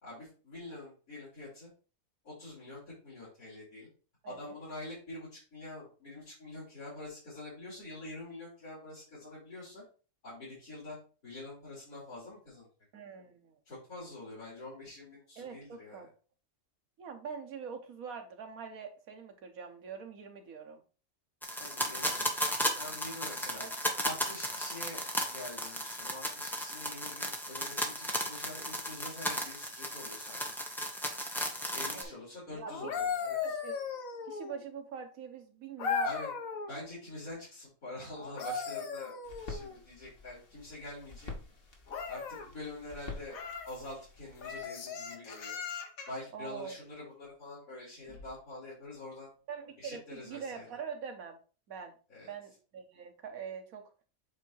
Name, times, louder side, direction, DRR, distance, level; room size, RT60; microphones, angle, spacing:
voice 1, 0.0-1.7 2.2-3.9 4.3-9.8 10.2-11.0 11.2-12.7 13.7-16.1 21.6-23.6 24.0-25.0 25.3-30.6 31.7-33.6 36.0-36.3 36.7-39.2 39.5-41.3 42.1-43.4 43.6-45.6 46.1-49.3 49.8-50.7 52.1-52.3, left 2 dB, 85° left, -9 dB, 3.9 m, -46 dB
voice 2, 4.2-4.5 6.5-6.6 12.9-13.6 15.4-16.1 17.0-20.8 23.5-23.7 31.9-32.2 32.5-32.9 33.4-33.8 34.3-36.1 46.3-46.8 49.5-51.4 51.7-51.9 52.2-53.8, right 6 dB, 75° right, 5 dB, 1.5 m, -44 dB
sound 1, 21.4-32.0, equal, ahead, 0.9 m, -35 dB
sound 2, 32.7-34.7 35.8-36.8 38.2-39.8 41.9-42.5 43.3-43.7 44.4-46.2 48.1-48.3, left 5 dB, 70° left, 1.4 m, -37 dB
sound 3, 39.2-44.6, left 3 dB, 40° left, 1.6 m, -48 dB
8.1 x 2.8 x 4.6 m, 0.36 s
omnidirectional pair, 1.5 m